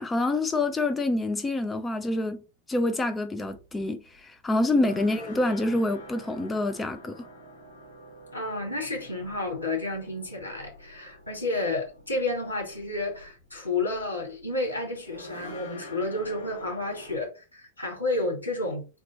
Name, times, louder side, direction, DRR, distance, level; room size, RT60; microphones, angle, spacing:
voice 1, 0.0-2.4 2.7-7.3, left 2 dB, 15° left, 0.5 m, -27 dB
sound 1, 3.4-17.3, equal, 65° left, 2.3 m, -46 dB
voice 2, 4.6-4.9 8.3-18.9, left 2 dB, 80° left, 2.1 m, -31 dB
3.8 x 3.0 x 4.1 m
figure-of-eight pair, 90°, 0 cm